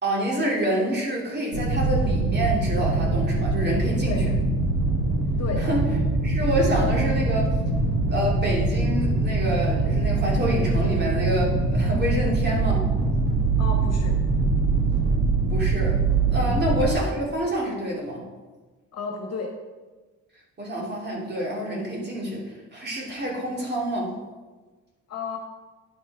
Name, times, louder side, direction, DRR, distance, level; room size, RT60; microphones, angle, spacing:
voice 1, 0.0-4.3 5.6-5.9 6.2-7.6 8.1-12.8 15.5-16.0 16.3-18.2 20.6-24.1, right 1 dB, 35° right, -3 dB, 3.0 m, -27 dB
sound 1, 1.5-16.9, right 3 dB, 75° right, 2.0 m, -23 dB
voice 2, 5.4-5.7 13.6-14.1 16.5-16.8 18.9-19.5 25.1-25.4, left 4 dB, 60° left, 1 dB, 1.5 m, -32 dB
9.8 x 5.4 x 4.9 m, 1.3 s
cardioid pair, 90°, 30 cm